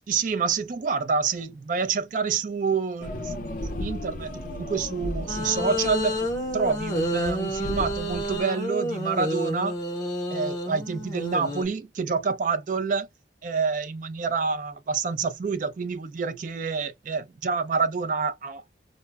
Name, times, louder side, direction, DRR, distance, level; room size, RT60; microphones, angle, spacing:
voice 1, 0.1-3.5 3.8-6.2 6.5-9.8 10.3-13.1 13.4-18.6, right 5 dB, 45° right, 0.3 m, -27 dB
sound 1, 3.0-8.4, left 1 dB, 45° left, 0.5 m, -36 dB
sound 2, 5.3-11.7, equal, 20° left, 0.8 m, -30 dB
2.2 x 2.0 x 3.3 m
head